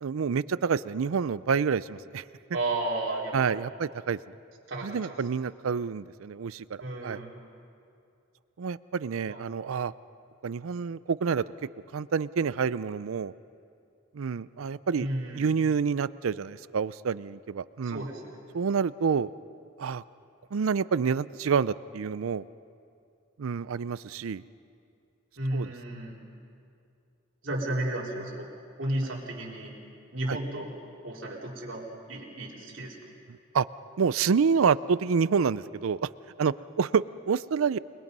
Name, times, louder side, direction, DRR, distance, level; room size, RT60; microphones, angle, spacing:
voice 1, 0.0-2.2 3.3-4.2 4.8-7.2 8.6-9.9 10.4-11.4 11.9-13.3 14.1-15.1 15.3-18.0 18.5-19.3 19.8-20.0 20.5-22.4 23.4-24.4 25.5-25.7 30.3-30.4 33.5-33.7 34.0-36.1 36.4-37.8, right 6 dB, 90° right, 17 dB, 0.5 m, -28 dB
voice 2, 2.5-3.6 4.7-5.2 6.8-7.3 9.3-9.4 15.0-15.5 17.8-18.4 25.4-26.2 27.4-28.5 28.8-29.7 30.1-30.7 31.0-33.0, right 1 dB, 65° right, -3 dB, 3.9 m, -33 dB
29.0 x 21.0 x 5.4 m, 2.5 s
head